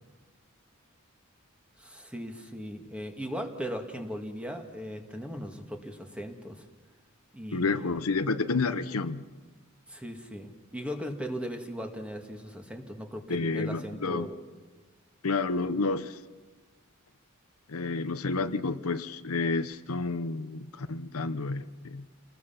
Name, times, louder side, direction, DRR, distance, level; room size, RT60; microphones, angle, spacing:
voice 1, 1.8-6.6 7.3-7.9 9.9-14.4, equal, 5° right, 4 dB, 2.0 m, -38 dB
voice 2, 7.5-9.2 13.3-14.3 15.2-16.2 17.7-22.1, left 3 dB, 90° left, 11 dB, 0.9 m, -30 dB
29.0 x 19.5 x 5.9 m, 1.4 s
head